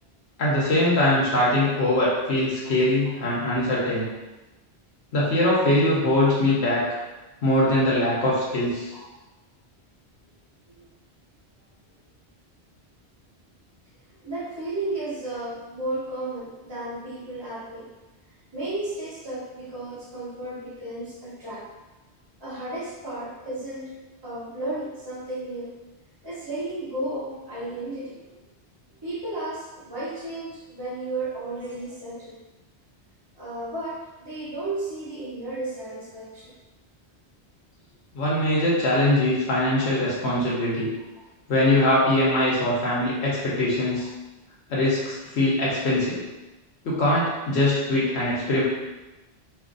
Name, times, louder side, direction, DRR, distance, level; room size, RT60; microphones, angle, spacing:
voice 1, 0.4-4.1 5.1-6.8 7.4-8.9 38.1-40.9 41.5-44.1 44.7-46.2 46.8-48.6, left 1 dB, 80° left, -6 dB, 1.0 m, -22 dB
voice 2, 14.2-17.9 18.5-21.7 22.4-23.9 24.2-25.7 26.2-28.4 29.0-32.4 33.4-36.5 44.0-44.1, right 2 dB, 30° right, -9 dB, 0.7 m, -33 dB
2.6 x 2.4 x 3.7 m, 1.1 s
omnidirectional pair, 1.1 m